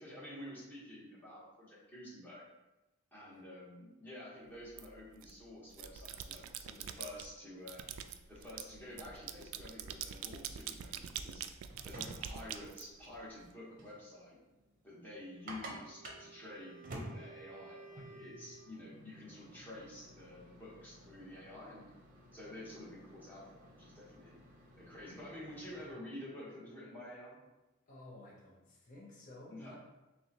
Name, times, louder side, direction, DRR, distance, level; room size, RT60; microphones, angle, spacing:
voice 1, 0.0-2.4 3.1-7.8 8.3-11.5 11.8-14.4 14.8-21.8 22.3-24.3 24.7-27.4 29.5-29.8, left 1 dB, 10° left, -7 dB, 1.1 m, -50 dB
sound 1, 4.8-5.3 5.7-7.3 7.7-13.4, right 9 dB, 90° right, 0.3 m, -45 dB
sound 2, 11.5-25.9, right 1 dB, 45° right, 0.7 m, -53 dB
Wind instrument woodwind instrument, 15.4-18.9, right 4 dB, 10° right, 1.1 m, -56 dB
voice 2, 27.9-29.8, left 1 dB, 40° left, -4 dB, 0.7 m, -54 dB
6.4 x 2.2 x 2.8 m, 1.0 s
head